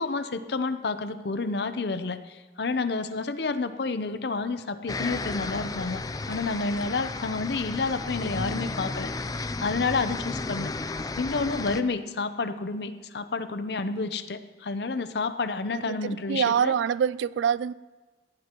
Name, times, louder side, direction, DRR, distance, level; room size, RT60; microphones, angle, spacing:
voice 1, 0.0-6.0 6.3-9.3 9.6-10.7 11.2-16.7, left 3 dB, 65° left, 0.7 m, -30 dB
sound 1, 4.9-11.8, left 3 dB, 20° left, 0.4 m, -33 dB
voice 2, 8.4-8.9 15.7-17.7, right 8 dB, 85° right, 0.3 m, -26 dB
19.0 x 14.5 x 3.0 m
head